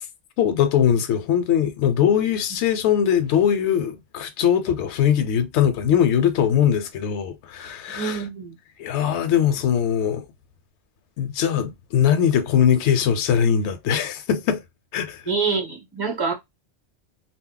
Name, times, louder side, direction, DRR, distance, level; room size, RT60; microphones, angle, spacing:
voice 1, 0.4-8.2 8.8-10.2 11.2-14.6 14.9-15.2, left 9 dB, 75° left, 0.8 m, -21 dB
voice 2, 7.9-8.6 15.3-16.3, right 5 dB, 20° right, 0.9 m, -26 dB
2.2 x 2.0 x 3.7 m
omnidirectional pair, 1.2 m